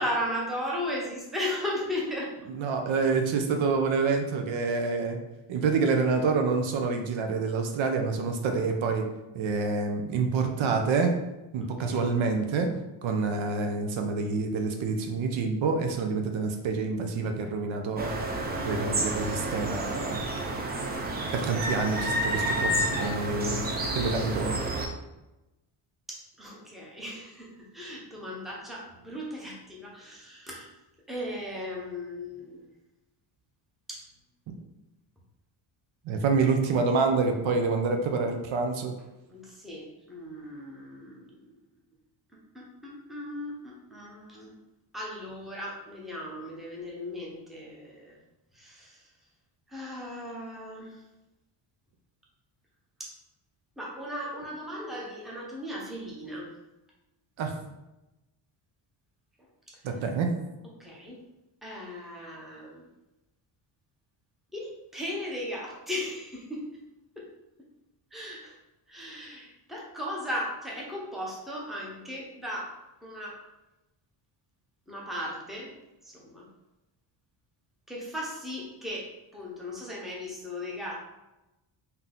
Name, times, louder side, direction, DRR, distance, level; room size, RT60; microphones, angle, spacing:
voice 1, 0.0-2.3 11.6-12.2 26.1-30.7 31.1-32.7 33.9-34.0 39.3-41.4 42.5-44.6 44.9-48.2 48.5-49.0 49.7-51.0 53.0-53.1 53.8-56.5 59.7-59.8 60.8-61.2 61.6-62.9 64.5-66.7 67.2-67.3 68.1-68.6 68.9-73.4 74.9-75.7 76.0-76.5 77.9-81.0, left 1 dB, ahead, -4 dB, 0.7 m, -37 dB
voice 2, 2.5-5.2 5.5-9.1 9.3-11.2 11.5-12.7 13.0-18.1 18.6-20.2 21.3-24.6 36.1-38.9 57.4-57.6 59.8-60.3, right 4 dB, 70° right, 4 dB, 0.7 m, -27 dB
sound 1, 18.0-24.9, right 1 dB, 25° right, 0.3 m, -30 dB
3.8 x 2.8 x 3.7 m, 0.98 s
cardioid pair, 160°, 49 cm